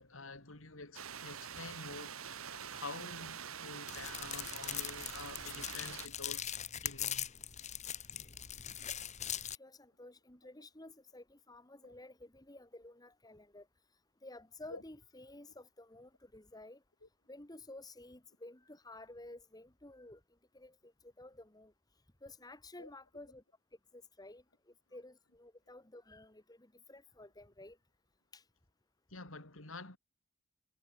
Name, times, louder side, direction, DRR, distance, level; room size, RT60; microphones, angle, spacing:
voice 1, 0.0-6.5 6.7-7.3 11.8-11.9 14.7-14.8 17.0-17.1 22.8-22.9 29.1-30.0, left 3 dB, 75° left, 4.0 m, -48 dB
sound 1, 0.9-6.1, right 8 dB, 85° right, 1.9 m, -45 dB
sound 2, 3.9-9.5, left 10 dB, 35° left, 1.7 m, -41 dB
voice 2, 9.5-13.7 14.2-16.8 17.3-20.2 20.5-21.7 22.2-23.4 23.9-27.8 28.3-28.4, left 2 dB, 20° left, 1.9 m, -53 dB
head